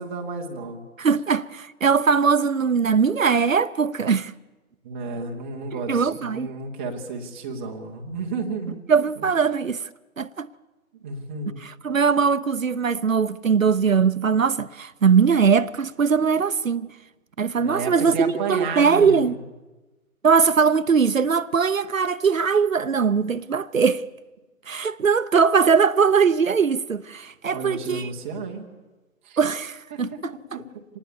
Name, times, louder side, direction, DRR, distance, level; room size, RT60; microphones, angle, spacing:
voice 1, 0.0-0.8 4.8-8.8 11.0-11.6 17.6-19.3 27.5-28.6 29.2-29.4 29.9-30.3 30.5-30.6, right 4 dB, 10° right, 0.8 m, -32 dB
voice 2, 1.0-4.3 5.9-6.5 8.9-9.8 10.2-10.5 11.6-16.9 17.4-19.4 20.2-24.0 24.7-28.1 29.4-30.3, right 6 dB, 60° right, 0.8 m, -21 dB
26.0 x 19.0 x 7.1 m
figure-of-eight pair, 140°, 44 cm